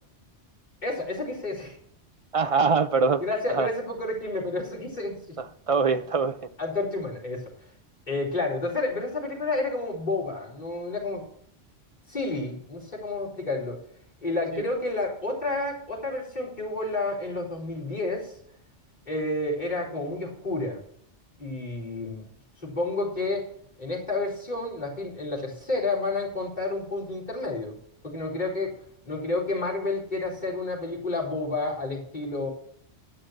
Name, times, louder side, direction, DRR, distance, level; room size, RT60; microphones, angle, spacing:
voice 1, 0.8-1.8 3.2-5.1 6.6-7.5 8.1-11.2 12.1-13.8 14.2-18.3 19.1-20.8 21.4-22.2 22.6-23.4 23.8-27.7 28.0-28.7 29.0-32.5, left 2 dB, 40° left, -6 dB, 4.5 m, -30 dB
voice 2, 2.3-3.2 3.5-3.7 5.4-6.4 14.5-14.6, right 4 dB, 65° right, 10 dB, 0.3 m, -23 dB
11.5 x 6.5 x 7.4 m, 0.68 s
omnidirectional pair, 1.2 m